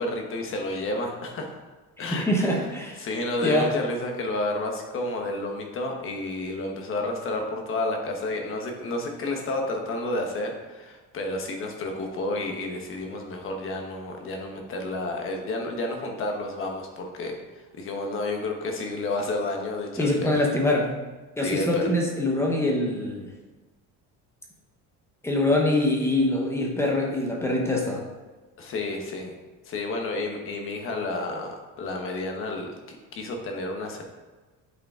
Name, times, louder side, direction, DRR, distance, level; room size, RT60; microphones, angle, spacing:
voice 1, 0.0-1.6 2.0-2.7 3.0-20.4 21.4-21.9 28.6-29.4 29.6-34.0, left 2 dB, 40° left, 2 dB, 1.1 m, -31 dB
voice 2, 2.0-3.0 3.4-3.7 20.0-20.9 21.4-23.3 25.2-28.0, left 1 dB, 10° left, -1 dB, 0.9 m, -24 dB
8.2 x 5.2 x 3.7 m, 1.3 s
cardioid pair, 180°, 34 cm